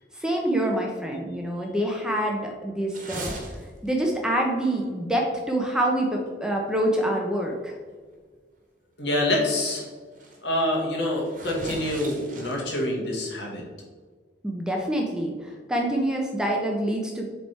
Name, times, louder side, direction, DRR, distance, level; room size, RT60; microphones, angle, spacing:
voice 1, 0.2-3.3 3.8-7.7 14.4-17.3, right 1 dB, 5° right, 0 dB, 0.7 m, -26 dB
sound 1, 2.9-4.0 4.2-4.4 5.3-5.4 5.8-5.9 6.6-6.7 8.3-8.4 9.1-9.2 9.5-9.9 10.1-10.4 11.1-12.8, right 2 dB, 45° right, 1.3 m, -39 dB
voice 2, 9.0-9.8 10.4-13.6, left 1 dB, 65° left, -2 dB, 1.7 m, -26 dB
7.4 x 3.5 x 4.2 m, 1.5 s
head